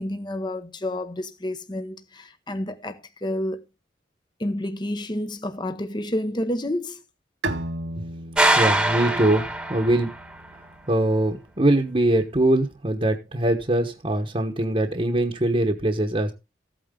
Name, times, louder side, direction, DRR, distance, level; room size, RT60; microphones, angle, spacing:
voice 1, 0.0-3.6 4.4-7.0, left 1 dB, 25° left, 0.9 m, -29 dB
Bowed string instrument, 7.4-10.9, right 2 dB, 85° right, 1.8 m, -35 dB
sound 1, 8.4-10.3, right 1 dB, 5° right, 1.3 m, -22 dB
voice 2, 8.5-10.1 10.9-16.3, right 1 dB, 30° right, 1.2 m, -22 dB
15.0 x 9.0 x 3.8 m
head